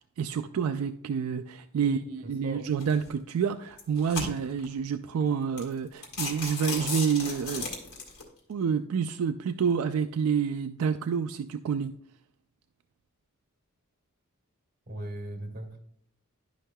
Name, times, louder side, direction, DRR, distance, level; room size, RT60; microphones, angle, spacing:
voice 1, 0.0-7.7 8.5-11.9, right 6 dB, 80° right, 9 dB, 0.3 m, -28 dB
voice 2, 1.8-2.7 14.9-15.8, right 1 dB, 45° right, 2 dB, 2.0 m, -39 dB
sound 1, 2.8-3.1 3.7-4.7 5.2-5.3 5.6-5.7 6.0-8.2, left 3 dB, 80° left, 2.0 m, -35 dB
11.5 x 5.4 x 2.2 m, 0.67 s
head